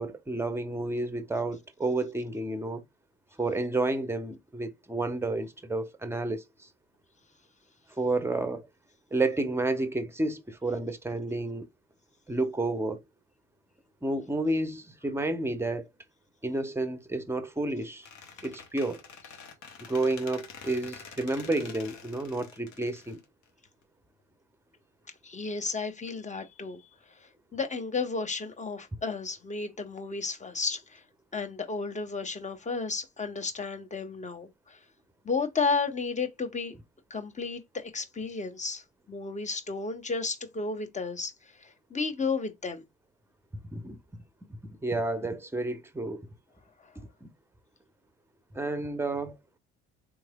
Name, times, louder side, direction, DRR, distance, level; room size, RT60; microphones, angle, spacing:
voice 1, 0.0-2.8 3.4-6.4 8.0-8.7 9.1-11.7 12.3-13.0 14.0-15.9 16.4-18.1 18.4-19.0 19.8-23.2 43.7-44.0 44.6-46.3 47.2-47.3 48.5-49.4, right 2 dB, 5° right, 0.7 m, -30 dB
Squeak, 18.0-23.8, left 6 dB, 55° left, 0.9 m, -47 dB
voice 2, 25.2-26.8 27.1-31.0 31.3-34.8 35.2-36.7 37.1-42.8 46.8-46.9, left 4 dB, 20° left, 0.8 m, -33 dB
3.7 x 3.1 x 2.2 m
hypercardioid pair, 55°, 34 cm